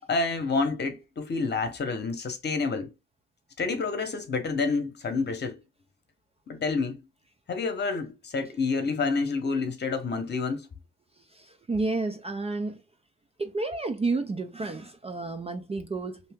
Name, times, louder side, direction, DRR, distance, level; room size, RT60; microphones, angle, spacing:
voice 1, 0.1-2.9 3.6-5.6 6.5-7.0 7.5-10.7, left 4 dB, 35° left, 0.9 m, -28 dB
voice 2, 11.3-12.8 13.4-16.2, right 3 dB, 20° right, 0.4 m, -31 dB
2.7 x 2.7 x 3.5 m
cardioid pair, 90°, 30 cm